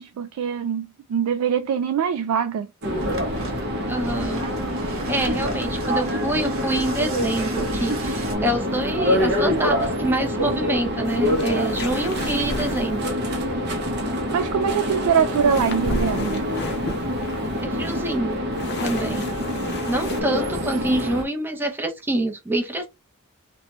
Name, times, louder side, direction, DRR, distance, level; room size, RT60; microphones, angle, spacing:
voice 1, 0.0-2.7 14.3-16.5, right 7 dB, 90° right, 0.3 m, -23 dB
sound 1, 2.8-21.2, equal, 50° right, 0.7 m, -26 dB
sound 2, 3.0-8.4, right 2 dB, 65° right, 1.1 m, -36 dB
voice 2, 3.9-4.5 4.9-13.1 17.6-18.4 18.8-19.3 19.8-22.9, right 1 dB, 10° right, 0.6 m, -26 dB
sound 3, 11.1-13.1 15.3-20.2, left 2 dB, 50° left, 0.6 m, -33 dB
2.7 x 2.2 x 2.9 m
head